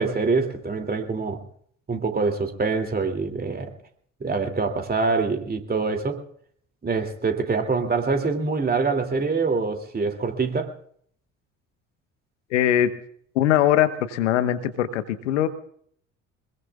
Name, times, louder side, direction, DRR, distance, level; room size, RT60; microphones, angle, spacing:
voice 1, 0.0-1.4 1.9-3.7 4.2-6.2 6.8-10.7, right 4 dB, 25° right, 5 dB, 2.7 m, -25 dB
voice 2, 12.5-12.9 13.3-15.5, left 11 dB, 70° left, 12 dB, 1.2 m, -21 dB
24.5 x 21.5 x 2.4 m, 0.62 s
figure-of-eight pair, 55°, 37 cm